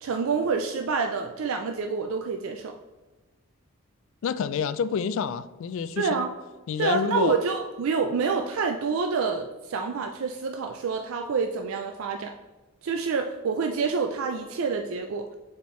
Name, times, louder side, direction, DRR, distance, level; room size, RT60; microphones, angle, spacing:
voice 1, 0.0-2.8 6.0-6.3 6.8-12.3 12.8-15.3, right 5 dB, 65° right, 4 dB, 0.4 m, -27 dB
voice 2, 4.2-6.3 6.7-7.4, left 6 dB, 60° left, 14 dB, 0.3 m, -28 dB
6.8 x 4.4 x 3.1 m, 1.1 s
head